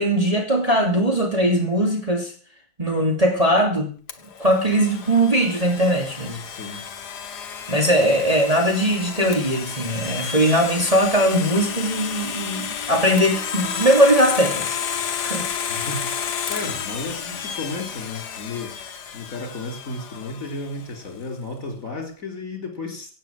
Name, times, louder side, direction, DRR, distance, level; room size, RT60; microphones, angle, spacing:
voice 1, 0.0-2.3 2.8-3.9 4.4-6.4 7.7-14.8 15.2-15.5, right 1 dB, 20° right, 0 dB, 2.6 m, -20 dB
Domestic sounds home sounds, 4.1-20.9, left 7 dB, 65° left, 1.7 m, -31 dB
voice 2, 6.5-6.8 15.7-18.7 19.1-23.1, left 3 dB, 45° left, 3 dB, 4.1 m, -33 dB
17.0 x 8.2 x 7.4 m, 0.42 s
omnidirectional pair, 2.0 m